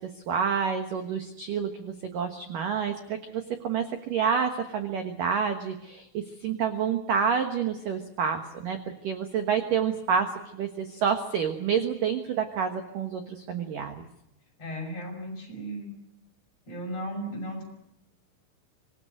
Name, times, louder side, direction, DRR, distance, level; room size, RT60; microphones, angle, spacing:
voice 1, 0.3-8.8 9.0-14.1, right 7 dB, 70° right, 6 dB, 2.1 m, -28 dB
voice 2, 14.6-16.0 16.7-17.6, equal, 30° left, 2 dB, 6.9 m, -35 dB
26.0 x 20.0 x 9.2 m, 0.83 s
omnidirectional pair, 5.9 m